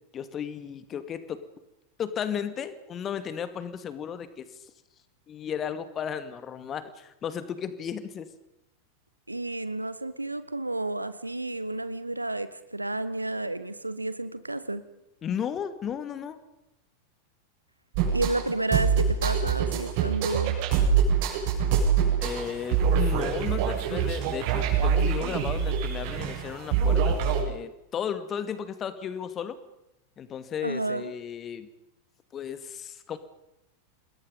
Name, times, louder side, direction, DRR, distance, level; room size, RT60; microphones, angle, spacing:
voice 1, 0.1-1.4 2.0-4.5 5.3-8.3 15.2-16.4 22.2-27.1 27.5-29.6 30.2-31.7 32.3-33.2, left 8 dB, 25° left, 11 dB, 2.3 m, -34 dB
voice 2, 9.3-14.8 18.1-20.6 30.6-31.1, right 2 dB, 85° right, 14 dB, 1.4 m, -31 dB
sound 1, 17.9-27.4, right 7 dB, 45° right, 7.3 m, -25 dB
28.0 x 21.0 x 5.5 m, 0.87 s
figure-of-eight pair, 90°, 0 cm